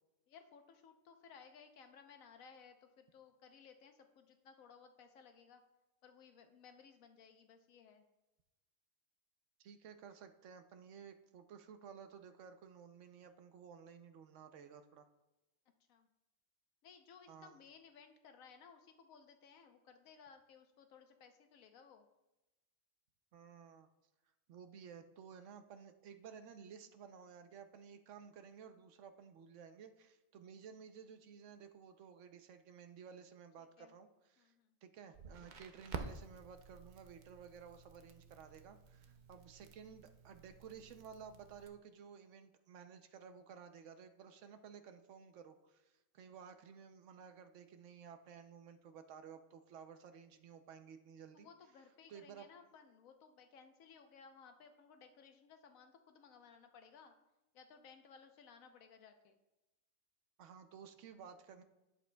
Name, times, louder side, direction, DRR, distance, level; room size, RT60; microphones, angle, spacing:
voice 1, 0.3-5.6 6.0-8.0 15.9-16.1 16.8-22.1 33.8-33.9 34.4-34.7 51.3-57.1 57.5-59.4, left 6 dB, 90° left, 7 dB, 1.2 m, -60 dB
voice 2, 9.6-15.1 17.3-17.6 23.3-23.9 24.5-34.5 34.8-51.5 52.1-52.5 60.4-61.6, right 7 dB, 70° right, 9 dB, 0.9 m, -55 dB
Crackle, 35.1-41.7, right 5 dB, 55° right, 0.5 m, -51 dB
10.5 x 7.2 x 2.2 m, 1.0 s
omnidirectional pair, 1.4 m